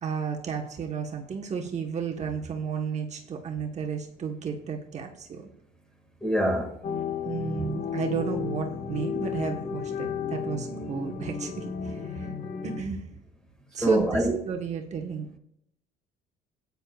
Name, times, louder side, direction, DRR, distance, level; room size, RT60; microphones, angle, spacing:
voice 1, 0.0-5.5 7.2-12.3 12.6-13.2 13.7-15.4, right 6 dB, 40° right, 1.2 m, -32 dB
voice 2, 6.2-6.7 13.8-14.4, equal, 5° left, 2.0 m, -25 dB
sound 1, 6.8-12.8, left 7 dB, 50° left, 1.2 m, -33 dB
15.5 x 9.4 x 2.4 m
cardioid pair, 110°, 17 cm